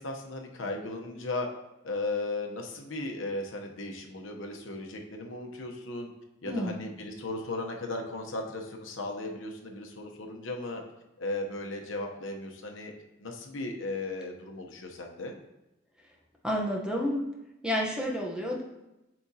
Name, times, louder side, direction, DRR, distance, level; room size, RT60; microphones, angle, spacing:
voice 1, 0.0-1.5 1.8-6.1 6.4-10.8 11.2-12.9 13.2-15.3, left 2 dB, 85° left, 2 dB, 0.9 m, -36 dB
voice 2, 16.4-17.2 17.6-18.6, equal, 5° right, -2 dB, 0.9 m, -30 dB
8.6 x 4.9 x 2.8 m, 0.93 s
head